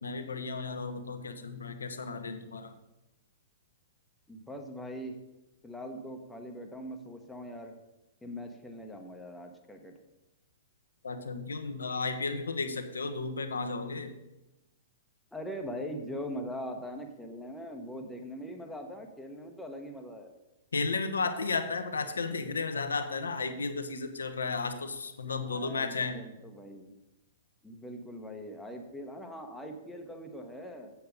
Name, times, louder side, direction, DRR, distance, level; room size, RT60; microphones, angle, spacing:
voice 1, 0.0-2.7 11.0-14.1 20.7-26.2, left 4 dB, 70° left, 8 dB, 0.9 m, -33 dB
voice 2, 4.3-5.2 5.6-7.8 8.2-9.9 15.3-20.3 25.5-26.9 27.6-30.9, equal, 5° left, 3 dB, 1.1 m, -41 dB
7.9 x 7.0 x 5.3 m, 0.97 s
figure-of-eight pair, 110°, 0 cm